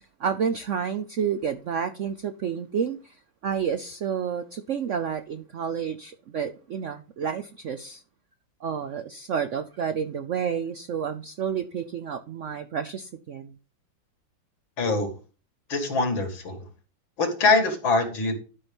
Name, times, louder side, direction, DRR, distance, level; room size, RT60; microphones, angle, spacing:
voice 1, 0.2-3.1 3.4-8.0 8.6-13.5, right 7 dB, 75° right, 10 dB, 0.6 m, -30 dB
voice 2, 14.8-15.1 15.7-16.6 17.2-18.4, left 3 dB, 90° left, 6 dB, 2.8 m, -23 dB
11.0 x 5.7 x 5.2 m, 0.34 s
omnidirectional pair, 2.1 m